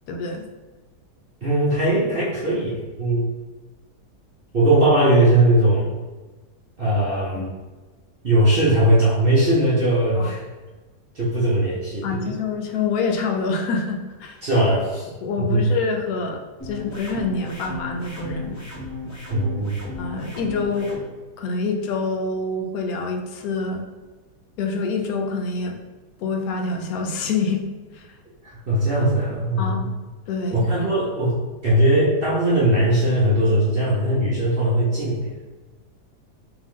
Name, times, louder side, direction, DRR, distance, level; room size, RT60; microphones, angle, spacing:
voice 1, 0.1-0.4 7.4-7.5 10.2-10.3 12.0-14.4 15.2-18.6 20.0-20.9 21.4-23.8 24.6-25.8 26.2-27.6 27.9-28.0 29.6-29.9 30.3-30.7, left 4 dB, 70° left, 3 dB, 1.0 m, -26 dB
voice 2, 1.4-3.2 4.5-5.9 6.8-7.5 8.2-10.4 11.1-12.3 14.4-15.1 15.4-15.7 19.3-19.8 28.4-29.9 30.5-31.4 31.6-35.3, right 1 dB, 45° right, -7 dB, 0.8 m, -19 dB
sound 1, 16.6-21.0, left 2 dB, 15° left, 0.8 m, -35 dB
3.6 x 3.0 x 3.6 m, 1.2 s
omnidirectional pair, 1.8 m